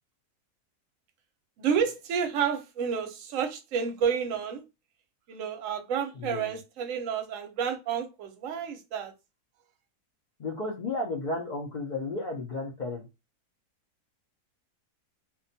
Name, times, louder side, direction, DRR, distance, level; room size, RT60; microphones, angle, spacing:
voice 1, 1.6-4.6 5.3-9.1, right 7 dB, 65° right, 0.9 m, -30 dB
voice 2, 6.1-6.6 10.4-13.1, left 2 dB, 80° left, 0.4 m, -33 dB
2.6 x 2.2 x 2.6 m
omnidirectional pair, 1.7 m